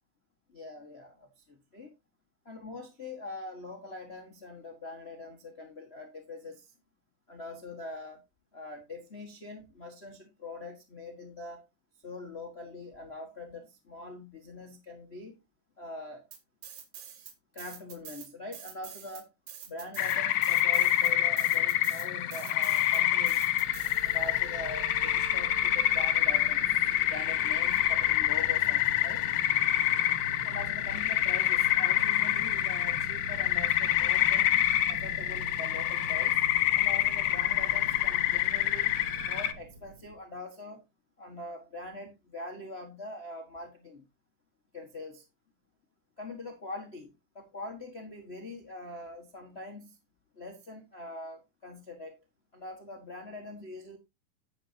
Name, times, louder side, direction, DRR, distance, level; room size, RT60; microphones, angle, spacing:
voice 1, 0.5-1.9 2.4-6.7 7.3-8.2 8.5-11.6 12.0-15.4 15.8-16.2 17.5-19.3 19.7-23.5 24.0-29.2 30.4-34.6 34.9-36.4 36.7-38.9 39.2-40.8 41.2-44.0 44.7-45.2 46.2-50.0 50.3-52.2 52.5-54.0, left 2 dB, 60° left, 0.6 m, -43 dB
sound 1, 16.3-17.3 17.6-24.4, right 9 dB, 85° right, 3.2 m, -46 dB
sound 2, 20.0-39.5, left 14 dB, 75° left, 2.2 m, -27 dB
sound 3, 22.7-40.2, right 3 dB, 55° right, 1.3 m, -46 dB
10.0 x 9.1 x 2.7 m
omnidirectional pair, 3.8 m